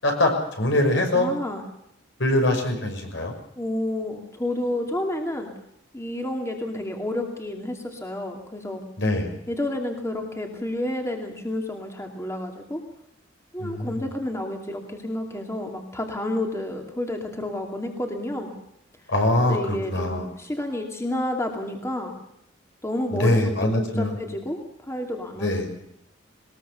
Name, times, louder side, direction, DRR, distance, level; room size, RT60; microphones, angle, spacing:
voice 1, 0.6-1.3 2.2-3.3 9.0-9.3 13.6-14.0 19.1-19.6 19.9-20.2 23.1-24.1 25.4-25.7, left 1 dB, 70° left, 3 dB, 6.2 m, -22 dB
voice 2, 1.1-1.6 3.6-5.5 5.9-8.8 9.5-12.8 13.5-18.5 19.4-22.2 22.8-25.7, left 1 dB, 15° left, 3 dB, 2.6 m, -30 dB
21.0 x 20.5 x 6.9 m, 0.78 s
head